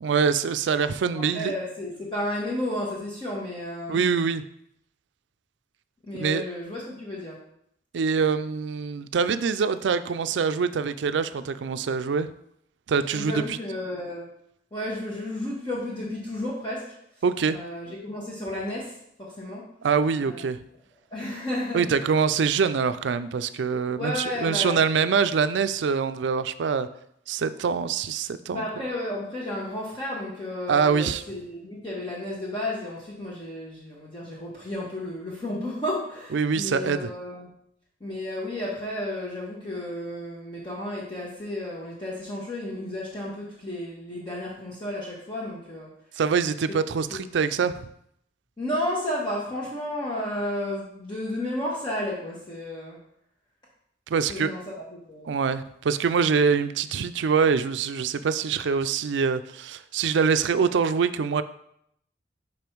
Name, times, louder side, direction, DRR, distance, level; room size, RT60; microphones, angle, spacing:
voice 1, 0.0-1.5 3.9-4.4 6.1-6.4 7.9-12.3 12.9-13.6 17.2-17.6 19.8-20.6 21.7-26.9 27.3-28.8 30.7-31.2 36.3-37.1 46.2-47.7 54.1-54.5 55.3-61.4, right 6 dB, 80° right, 12 dB, 0.4 m, -24 dB
voice 2, 1.1-4.0 6.0-7.4 13.1-14.3 14.7-16.8 17.5-19.6 20.2-20.4 21.1-21.9 24.0-24.8 28.5-37.5 38.0-45.9 47.1-47.3 48.6-53.0 54.3-55.4, left 1 dB, 25° left, -6 dB, 1.2 m, -32 dB
5.4 x 5.2 x 4.5 m, 0.73 s
head